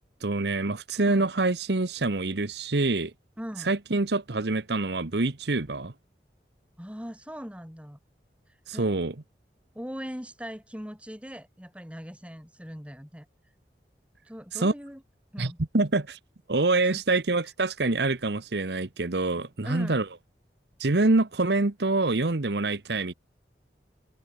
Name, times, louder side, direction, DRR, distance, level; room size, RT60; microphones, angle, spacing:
voice 1, 0.2-3.1 3.6-5.9 8.7-9.1 14.5-14.7 15.4-16.2 16.5-20.0 20.8-23.1, right 2 dB, 75° right, 1.1 m, -26 dB
voice 2, 3.4-3.8 6.8-8.0 8.7-8.9 9.7-13.3 14.2-15.0 15.3-15.6 16.8-17.0 19.6-20.0, equal, 5° right, 6.2 m, -40 dB
open air
head